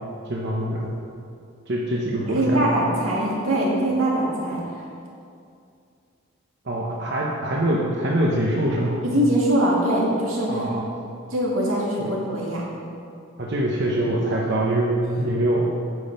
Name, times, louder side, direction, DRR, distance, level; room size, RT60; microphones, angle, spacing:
voice 1, 0.2-1.0 1.7-2.7 6.6-9.0 10.5-10.9 12.0-12.2 13.4-15.7, right 1 dB, 55° right, -3 dB, 0.9 m, -24 dB
voice 2, 2.2-4.6 9.0-10.5 11.3-12.7, right 1 dB, 90° right, -4 dB, 2.3 m, -22 dB
9.6 x 6.9 x 5.4 m, 2.5 s
head